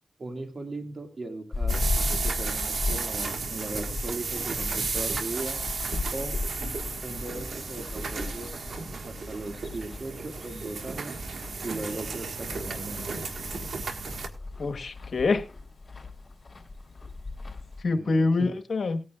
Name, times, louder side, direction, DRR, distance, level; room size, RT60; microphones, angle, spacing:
voice 1, 0.2-1.8 2.2-5.6 6.1-6.4 7.0-8.5 9.0-11.2 11.6-13.2 17.9-18.5, right 2 dB, 60° right, 5 dB, 1.9 m, -38 dB
sound 1, 1.5-17.8, left 3 dB, 45° left, 3.4 m, -36 dB
sound 2, 1.7-14.3, right 4 dB, 80° right, 1.5 m, -33 dB
voice 2, 14.6-15.5 17.8-19.0, left 3 dB, 75° left, 7 dB, 1.2 m, -25 dB
18.5 x 9.4 x 2.3 m, 0.29 s
cardioid pair, 45°, 0 cm